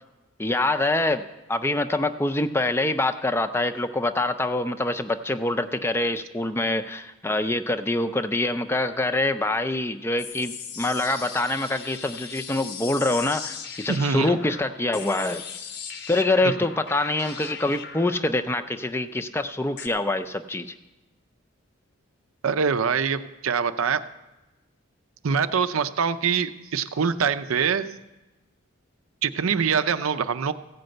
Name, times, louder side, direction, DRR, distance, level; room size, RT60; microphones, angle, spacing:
voice 1, 0.4-1.2 1.5-15.4 16.1-20.7, left 2 dB, 10° left, 9 dB, 0.4 m, -25 dB
sound 1, 10.2-19.9, left 7 dB, 50° left, 0.7 m, -39 dB
voice 2, 13.9-14.4 16.4-16.5 22.4-24.0 25.2-27.9 29.2-30.5, right 6 dB, 85° right, 11 dB, 0.5 m, -24 dB
15.5 x 5.2 x 7.7 m, 1.1 s
head